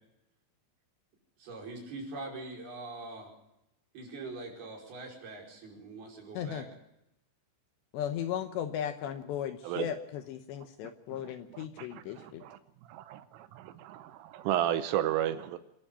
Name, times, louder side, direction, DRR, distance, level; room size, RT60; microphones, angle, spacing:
voice 1, 1.4-3.3 3.9-6.7, right 2 dB, 50° right, 0 dB, 6.7 m, -43 dB
voice 2, 6.3-6.7 7.9-12.4, left 9 dB, 75° left, 8 dB, 2.8 m, -36 dB
voice 3, 11.5-12.6 12.9-15.6, right 12 dB, 80° right, 12 dB, 3.3 m, -33 dB
26.5 x 11.0 x 8.8 m, 0.84 s
omnidirectional pair, 5.8 m